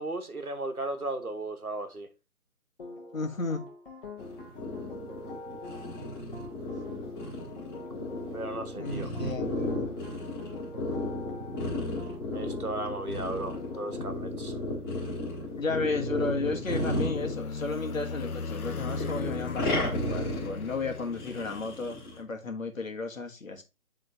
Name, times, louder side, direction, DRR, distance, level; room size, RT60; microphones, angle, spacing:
voice 1, 0.0-2.1 8.3-9.1 12.3-14.6, right 2 dB, 85° right, 1.3 m, -35 dB
sound 1, 2.8-14.1, left 3 dB, 40° left, 1.4 m, -45 dB
voice 2, 3.1-3.7 8.7-9.9 15.5-23.6, left 3 dB, 65° left, 1.5 m, -33 dB
sound 2, 4.2-18.0 18.2-22.2, left 1 dB, 15° left, 2.3 m, -34 dB
sound 3, 16.2-21.9, left 4 dB, 85° left, 0.7 m, -38 dB
10.0 x 3.8 x 2.8 m
figure-of-eight pair, 145°, 43 cm